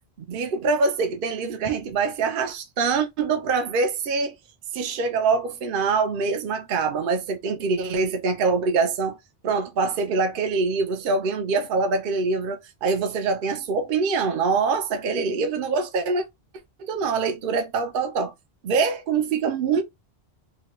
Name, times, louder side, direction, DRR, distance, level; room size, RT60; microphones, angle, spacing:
voice 1, 0.3-4.3 4.7-9.2 9.4-16.2 16.8-18.3 18.6-19.8, right 4 dB, 60° right, 0.7 m, -24 dB
3.0 x 2.2 x 2.9 m
omnidirectional pair, 1.1 m